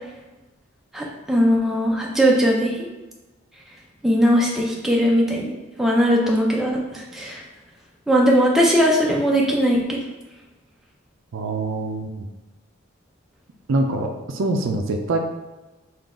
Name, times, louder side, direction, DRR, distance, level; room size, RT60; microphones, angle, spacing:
voice 1, 0.9-2.9 4.0-5.5 5.8-7.4 8.1-10.0, equal, ahead, -3 dB, 0.5 m, -19 dB
voice 2, 11.3-12.3 13.7-15.2, right 2 dB, 70° right, 4 dB, 0.4 m, -24 dB
3.8 x 2.4 x 3.6 m, 1.1 s
head